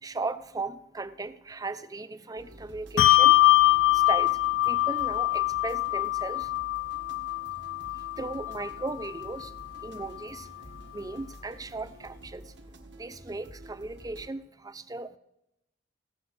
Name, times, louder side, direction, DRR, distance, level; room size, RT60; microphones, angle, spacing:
voice 1, 0.0-3.4 3.9-4.4 4.7-6.5 7.8-9.5 9.8-10.5 10.9-12.5 13.0-15.2, right 3 dB, 20° right, 13 dB, 0.6 m, -37 dB
sound 1, 2.4-14.3, right 1 dB, 65° right, 1.4 m, -50 dB
Bell, 3.0-9.8, left 16 dB, 80° left, 0.4 m, -24 dB
16.5 x 7.3 x 6.3 m, 0.85 s
head